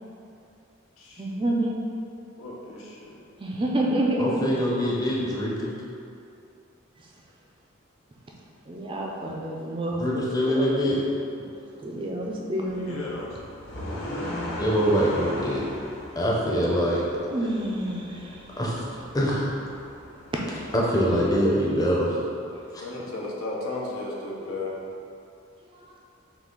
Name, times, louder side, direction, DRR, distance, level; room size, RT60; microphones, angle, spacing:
voice 1, 1.2-1.8 3.4-4.3 8.7-10.7 11.8-13.0 17.3-18.4 25.7-25.8, right 1 dB, 25° right, -2 dB, 0.4 m, -28 dB
voice 2, 2.4-3.2 12.7-13.4 22.8-24.7, left 2 dB, 90° left, -3 dB, 0.8 m, -34 dB
voice 3, 4.2-5.8 10.0-11.0 14.6-15.6 16.2-17.0 18.6-18.8 19.1-19.5 20.7-22.2, equal, 15° left, -5 dB, 0.6 m, -24 dB
sound 1, 12.7-21.6, left 1 dB, 60° left, 0.9 m, -38 dB
5.8 x 2.4 x 3.7 m, 2.6 s
head